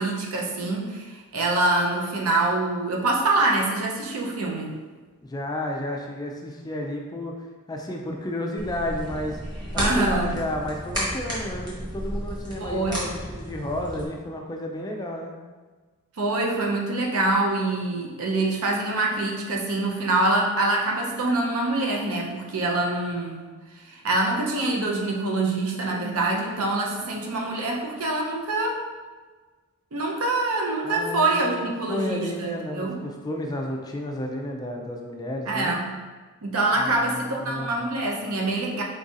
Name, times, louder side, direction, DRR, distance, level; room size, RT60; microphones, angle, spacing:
voice 1, 0.0-4.8 9.8-10.3 12.6-13.0 16.2-23.4 23.8-28.8 29.9-33.0 35.5-35.9 36.4-38.8, right 2 dB, 70° right, 0 dB, 0.6 m, -25 dB
voice 2, 5.2-9.4 9.7-15.3 30.8-35.7 36.8-37.9, left 1 dB, 15° left, 1 dB, 0.3 m, -32 dB
sound 1, 8.6-14.1, equal, 20° right, 1.1 m, -32 dB
3.9 x 3.8 x 2.5 m, 1.4 s
head